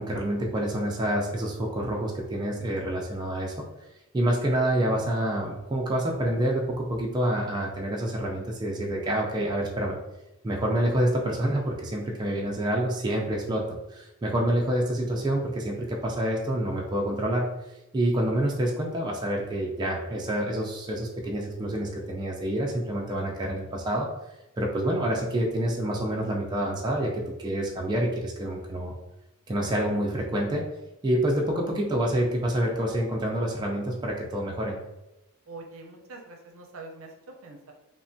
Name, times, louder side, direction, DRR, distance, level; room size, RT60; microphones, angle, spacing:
voice 1, 0.0-3.5 4.1-10.0 10.4-17.5 17.9-24.1 24.6-28.9 29.5-30.6 31.0-34.8, right 1 dB, 20° right, -2 dB, 0.3 m, -27 dB
voice 2, 35.5-37.1 37.4-37.7, right 3 dB, 70° right, 2 dB, 0.5 m, -44 dB
3.2 x 2.1 x 2.6 m, 0.96 s
head